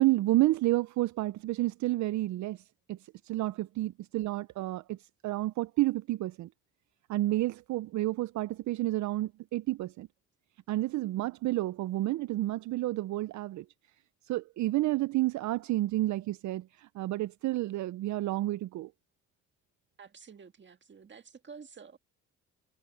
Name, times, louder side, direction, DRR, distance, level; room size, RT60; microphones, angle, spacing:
voice 1, 0.0-2.6 2.9-3.0 3.2-5.0 5.2-6.5 7.1-10.1 10.7-13.6 14.3-18.9, right 17 dB, 70° right, 0.5 m, -30 dB
voice 2, 20.0-22.0, right 6 dB, 40° right, 1.8 m, -50 dB
cardioid pair, 90°, 30 cm